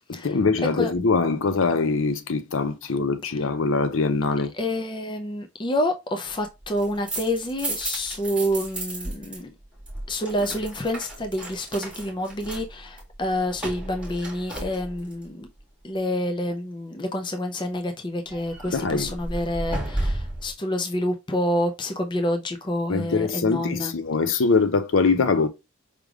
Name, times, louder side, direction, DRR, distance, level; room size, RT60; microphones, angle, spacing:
voice 1, 0.1-4.5 18.7-19.1 22.9-25.5, left 4 dB, 65° left, 0.6 m, -23 dB
voice 2, 4.5-9.5 10.1-15.5 15.8-23.9, left 1 dB, 20° left, 0.5 m, -28 dB
sound 1, 6.6-9.4 9.6-15.2 18.3-20.5, right 1 dB, 5° right, 1.5 m, -33 dB
5.0 x 3.3 x 2.3 m
head